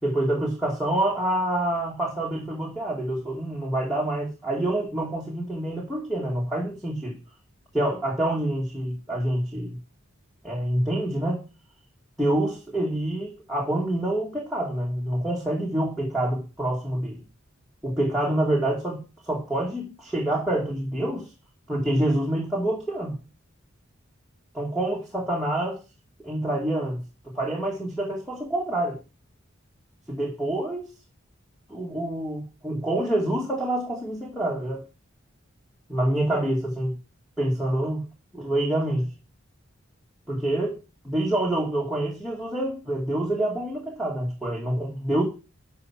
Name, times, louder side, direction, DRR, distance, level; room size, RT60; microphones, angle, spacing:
voice 1, 0.0-7.2 7.7-9.8 10.4-11.4 12.2-17.2 17.8-21.3 21.7-23.2 24.5-25.8 26.2-29.0 30.1-30.9 31.7-34.8 35.9-36.9 37.4-38.0 38.3-39.1 40.3-40.7 41.1-45.2, right 1 dB, ahead, 2.4 m, -27 dB
12.0 x 5.9 x 6.4 m
head